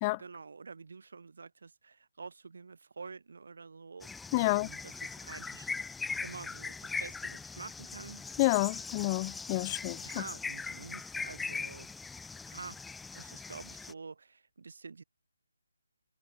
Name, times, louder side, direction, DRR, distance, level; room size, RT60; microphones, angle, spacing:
voice 1, 0.1-8.3 10.0-11.9 12.5-12.8 13.1-15.0, right 4 dB, 65° right, 3.5 m, -48 dB
sound 1, 4.0-13.9, left 4 dB, 5° left, 1.8 m, -40 dB
voice 2, 4.3-4.7 8.4-10.0, left 24 dB, 20° left, 0.3 m, -29 dB
figure-of-eight pair, 155°, 0 cm